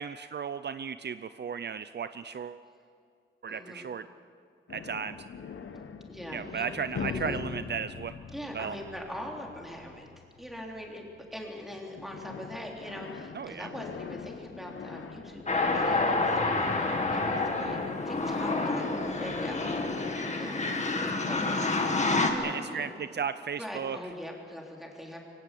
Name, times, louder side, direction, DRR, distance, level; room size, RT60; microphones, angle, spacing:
voice 1, 0.0-2.6 3.4-4.0 4.7-5.2 6.3-8.1 8.5-8.8 13.3-13.7 22.4-24.0, right 6 dB, 55° right, 12 dB, 0.5 m, -35 dB
voice 2, 3.5-3.9 6.1-7.4 8.3-10.1 10.4-18.9 19.2-20.6 20.9-21.4 21.9-22.9 23.6-25.2, equal, ahead, 0 dB, 3.5 m, -42 dB
sound 1, 4.7-11.7 12.0-20.3, left 6 dB, 80° left, 1.2 m, -42 dB
sound 2, 15.5-22.3, left 3 dB, 35° left, 2.0 m, -28 dB
24.0 x 17.5 x 8.4 m, 2.4 s
wide cardioid pair, 155°, 21 cm